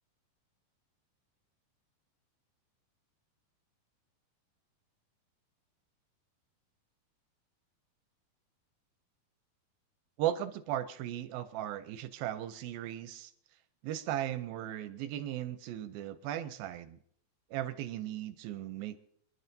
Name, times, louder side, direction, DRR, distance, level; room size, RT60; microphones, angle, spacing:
voice 1, 10.2-13.3 13.8-17.0 17.5-19.0, right 12 dB, 80° right, 11 dB, 2.4 m, -37 dB
28.0 x 11.5 x 2.7 m, 0.63 s
omnidirectional pair, 4.4 m